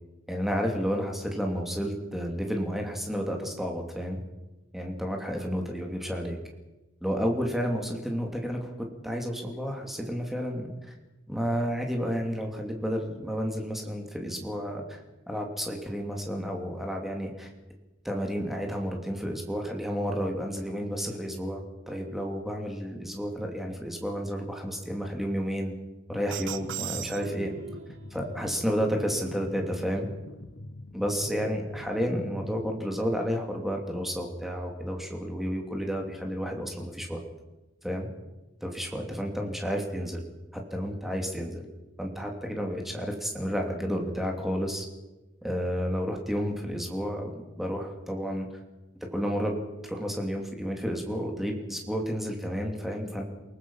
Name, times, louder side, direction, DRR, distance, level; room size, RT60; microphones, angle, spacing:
voice 1, 0.3-4.2 4.7-6.4 7.0-8.8 9.0-10.7 11.3-15.0 15.3-17.5 18.0-25.7 26.1-27.5 28.1-30.1 30.9-37.2 37.8-38.1 38.6-40.2 40.5-41.6 42.0-44.9 45.4-48.5 49.1-49.6 49.8-53.2, equal, ahead, 2 dB, 2.8 m, -31 dB
sound 1, 26.1-32.9, left 1 dB, 70° left, 1.3 m, -44 dB
sound 2, 26.3-28.0 28.7-29.8, right 9 dB, 70° right, 1.0 m, -40 dB
28.5 x 19.0 x 5.7 m, 1.0 s
head